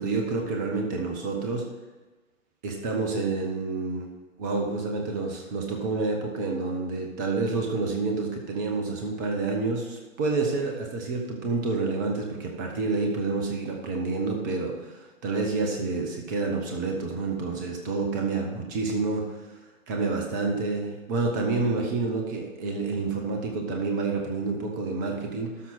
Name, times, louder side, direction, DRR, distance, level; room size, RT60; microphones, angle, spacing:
voice 1, 0.0-1.6 2.6-4.0 4.4-19.4 19.9-25.7, right 3 dB, 15° right, 2 dB, 0.8 m, -28 dB
12.5 x 5.8 x 4.2 m, 1.2 s
figure-of-eight pair, 130°, 39 cm